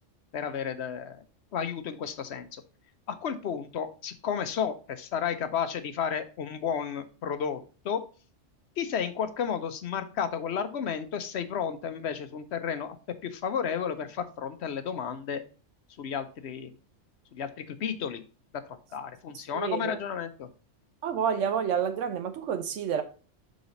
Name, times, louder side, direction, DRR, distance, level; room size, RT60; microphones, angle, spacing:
voice 1, 0.3-1.2 1.5-2.5 3.1-8.0 8.8-13.0 13.2-15.4 16.0-16.7 17.3-18.2 18.9-20.5, left 7 dB, 65° left, 0.9 m, -32 dB
voice 2, 19.5-20.0 21.0-23.0, right 7 dB, 85° right, 1.0 m, -29 dB
6.4 x 4.0 x 3.9 m
omnidirectional pair, 1.2 m